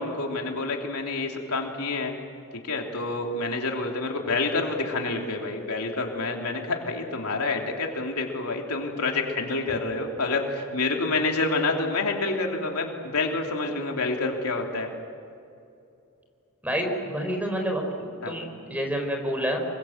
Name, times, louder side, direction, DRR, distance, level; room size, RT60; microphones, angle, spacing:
voice 1, 0.0-2.1 2.6-14.9 18.2-18.3, left 3 dB, 85° left, 1 dB, 3.3 m, -28 dB
voice 2, 16.6-19.6, equal, 5° right, 3 dB, 4.1 m, -28 dB
27.0 x 23.5 x 8.0 m, 2.5 s
head